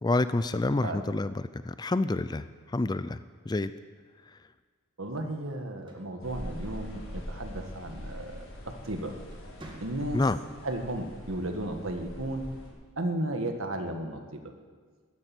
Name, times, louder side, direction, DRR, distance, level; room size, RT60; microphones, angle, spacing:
voice 1, 0.0-3.2 3.5-3.7 10.1-10.4, left 2 dB, 20° left, 14 dB, 0.4 m, -28 dB
voice 2, 0.7-1.0 5.0-8.4 8.7-9.1 9.8-10.2 10.6-12.5 13.0-14.5, right 1 dB, 70° right, 5 dB, 1.7 m, -34 dB
sound 1, 5.6-7.1 8.6-8.8 9.2-10.4, right 1 dB, 20° right, 1.9 m, -51 dB
sound 2, 6.2-12.7, equal, 70° left, 6.2 m, -43 dB
14.5 x 10.5 x 9.1 m, 1.5 s
head